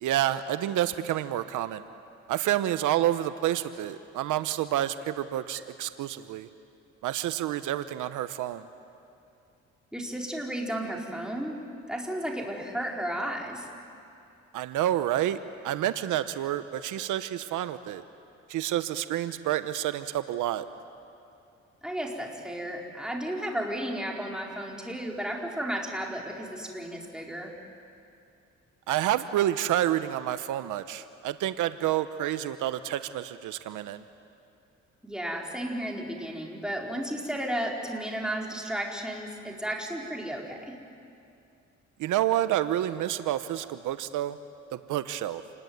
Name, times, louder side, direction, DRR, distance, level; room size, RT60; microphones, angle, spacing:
voice 1, 0.0-1.8 2.3-6.5 7.0-8.6 14.5-15.4 15.6-18.0 18.5-20.7 28.9-34.0 42.0-44.4 44.7-45.4, right 12 dB, 85° right, 12 dB, 0.9 m, -29 dB
voice 2, 9.9-11.6 11.9-13.7 21.8-27.6 33.7-33.8 35.0-40.8, right 1 dB, ahead, -1 dB, 4.3 m, -33 dB
28.0 x 20.0 x 9.4 m, 2.6 s
cardioid pair, 90°, 30 cm